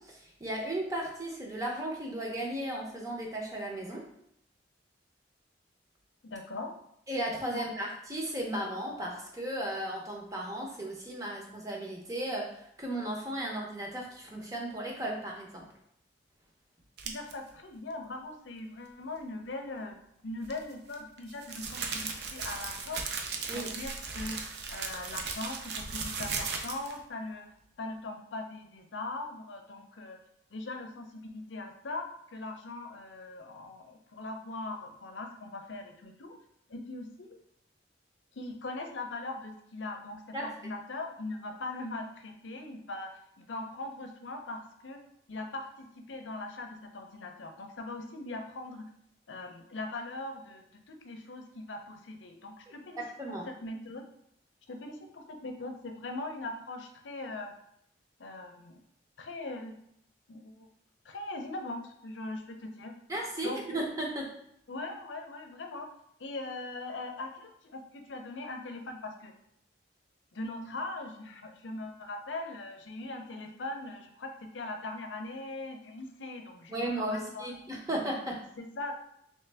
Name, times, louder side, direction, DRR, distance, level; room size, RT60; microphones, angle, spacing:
voice 1, 0.0-4.0 7.1-15.6 23.5-23.7 40.3-40.5 53.0-53.4 63.1-64.2 76.7-78.4, right 1 dB, 20° right, -1 dB, 0.7 m, -35 dB
voice 2, 6.2-6.7 7.5-7.7 17.0-20.0 20.2-23.0 23.5-24.4 24.7-27.4 27.8-30.2 30.5-36.4 36.7-37.3 38.3-45.0 45.3-48.8 49.3-53.0 53.5-54.0 54.7-57.5 58.2-58.8 59.2-59.7 60.3-60.7 61.0-62.9 63.4-63.8 64.7-65.9 66.2-69.3 70.3-77.6 78.6-78.9, left 2 dB, 80° left, 4 dB, 0.6 m, -40 dB
sound 1, 17.0-17.3 20.4-27.0, right 5 dB, 60° right, 0.5 m, -37 dB
3.3 x 3.2 x 3.3 m, 0.74 s
head